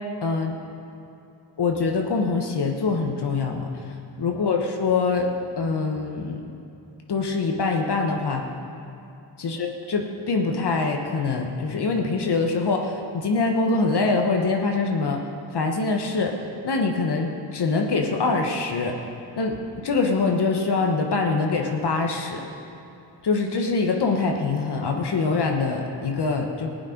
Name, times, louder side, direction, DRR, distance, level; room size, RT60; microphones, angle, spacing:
voice 1, 0.2-0.6 1.6-5.3 5.6-6.4 7.1-8.4 9.4-15.2 15.5-16.4 16.6-19.0 19.4-22.4 23.2-26.7, left 4 dB, 55° left, 2 dB, 1.3 m, -24 dB
15.5 x 8.8 x 5.2 m, 2.7 s
cardioid pair, 50°, 47 cm